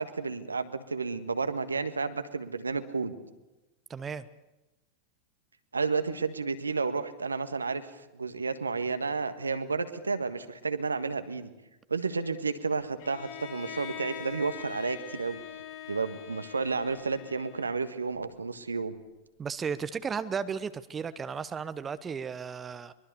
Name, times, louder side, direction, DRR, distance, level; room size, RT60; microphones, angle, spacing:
voice 1, 0.0-3.1 5.7-11.5 11.9-15.4 15.9-18.9, right 4 dB, 75° right, 10 dB, 1.6 m, -31 dB
voice 2, 3.9-4.3 19.4-22.9, right 6 dB, 20° right, 13 dB, 1.0 m, -34 dB
Bowed string instrument, 13.0-18.0, left 8 dB, 50° left, 2.9 m, -43 dB
23.5 x 23.0 x 7.0 m, 1.0 s
figure-of-eight pair, 90°, 0 cm